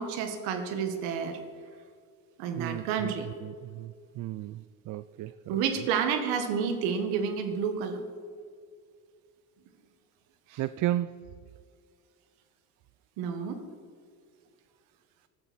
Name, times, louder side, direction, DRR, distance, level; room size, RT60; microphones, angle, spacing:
voice 1, 0.0-1.4 2.4-3.3 5.5-8.0 10.5-10.6 13.2-13.6, right 6 dB, 85° right, 1.8 m, -30 dB
voice 2, 2.6-5.6 10.6-11.1, right 14 dB, 45° right, 0.4 m, -34 dB
16.0 x 12.5 x 4.4 m
supercardioid pair, 105°, 42 cm